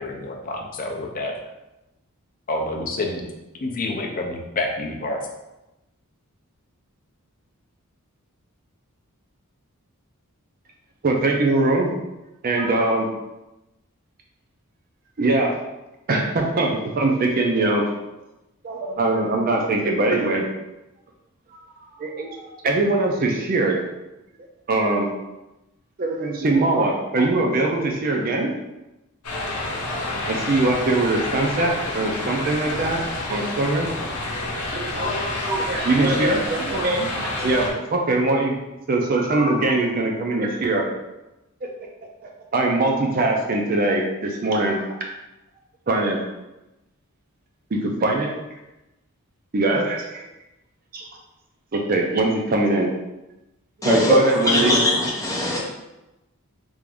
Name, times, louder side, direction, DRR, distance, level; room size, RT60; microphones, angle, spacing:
voice 1, 0.0-1.3 2.5-3.2 3.6-5.2, left 2 dB, 40° left, 1 dB, 0.4 m, -28 dB
voice 2, 11.0-11.9 12.4-13.1 15.2-15.6 16.1-17.9 18.6-20.5 22.0-23.8 24.7-25.1 26.0-28.5 30.3-33.0 33.3-33.9 34.7-38.6 38.9-40.9 42.5-44.9 45.9-46.2 47.7-48.3 49.5-50.2 50.9-51.0 51.7-52.9 53.8-54.8, right 2 dB, 40° right, 1 dB, 0.4 m, -22 dB
sound 1, 29.2-37.7, left 2 dB, 85° left, 0.7 m, -29 dB
voice 3, 53.8-54.2 54.4-55.6, left 1 dB, 15° left, -4 dB, 0.8 m, -20 dB
3.4 x 2.5 x 3.4 m, 0.97 s
head